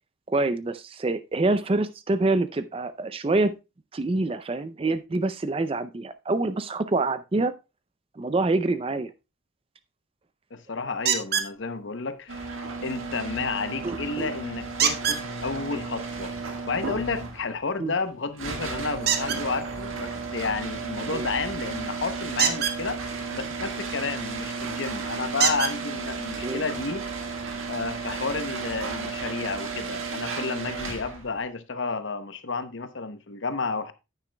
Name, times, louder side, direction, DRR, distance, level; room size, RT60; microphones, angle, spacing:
voice 1, 0.3-3.5 3.9-7.5 8.2-9.1 13.8-14.3 17.8-18.0 21.1-21.3 26.4-26.6, right 2 dB, 25° right, 0.4 m, -26 dB
voice 2, 10.5-12.5 12.8-16.3 16.7-23.0 23.3-27.0 27.7-33.9, left 4 dB, 65° left, 0.8 m, -31 dB
sound 1, 11.1-11.5 14.8-15.2 19.0-19.4 22.3-22.8 24.4-24.5 25.4-25.7 26.7-26.8 27.3-27.4, right 8 dB, 50° right, 0.9 m, -24 dB
sound 2, 12.3-31.3, right 4 dB, 85° right, 1.6 m, -34 dB
10.0 x 8.9 x 2.2 m
head